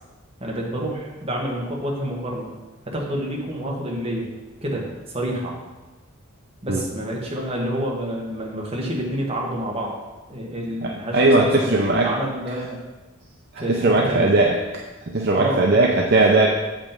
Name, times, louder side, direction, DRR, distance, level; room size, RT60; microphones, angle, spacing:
voice 1, 0.4-2.5 2.8-4.3 4.6-5.5 6.6-10.0 10.3-12.8 13.6-14.4 15.3-15.9, right 1 dB, 25° right, -2 dB, 1.5 m, -28 dB
voice 2, 10.8-12.1 13.7-14.6 15.1-16.5, right 2 dB, 50° right, 0 dB, 0.6 m, -18 dB
7.3 x 5.2 x 5.3 m, 1.1 s
head